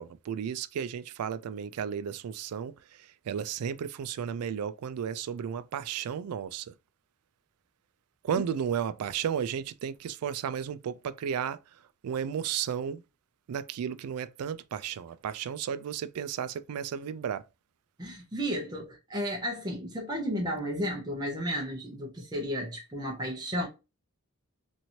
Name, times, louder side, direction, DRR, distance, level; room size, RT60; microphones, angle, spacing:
voice 1, 0.0-6.7 8.2-11.6 12.0-13.0 13.5-17.4, right 8 dB, 90° right, 0.3 m, -33 dB
voice 2, 18.0-23.7, equal, 20° right, 0.7 m, -33 dB
3.0 x 2.6 x 2.8 m
head